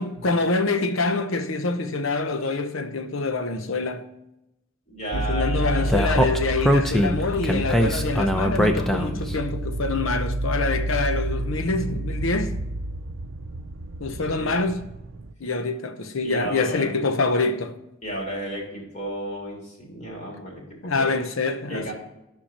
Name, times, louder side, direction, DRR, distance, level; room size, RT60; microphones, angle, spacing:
voice 1, 0.0-4.0 5.1-12.5 14.0-14.8 15.4-17.8 20.8-21.9, left 3 dB, 85° left, 0.8 m, -25 dB
voice 2, 4.9-6.1 14.4-14.7 16.2-16.9 18.0-21.2 21.7-21.9, right 1 dB, 35° left, 3.0 m, -33 dB
sound 1, 5.1-15.3, right 1 dB, 75° right, 0.5 m, -30 dB
Speech, 5.9-9.3, equal, ahead, 0.6 m, -22 dB
13.0 x 5.7 x 4.3 m
head